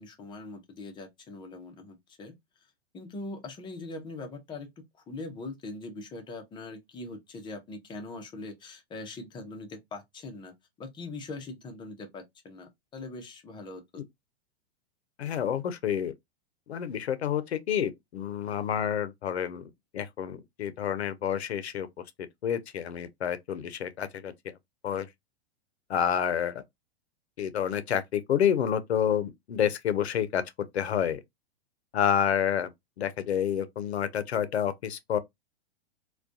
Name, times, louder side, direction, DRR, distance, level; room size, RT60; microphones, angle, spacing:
voice 1, 0.0-2.3 2.9-14.0, left 2 dB, 15° left, 0.5 m, -42 dB
voice 2, 15.2-16.1 16.7-21.9 22.4-24.3 24.8-25.1 25.9-26.6 27.4-30.4 30.7-31.2 31.9-32.7 33.0-35.2, left 9 dB, 90° left, 0.5 m, -29 dB
2.2 x 2.2 x 2.5 m
hypercardioid pair, 115°, 32 cm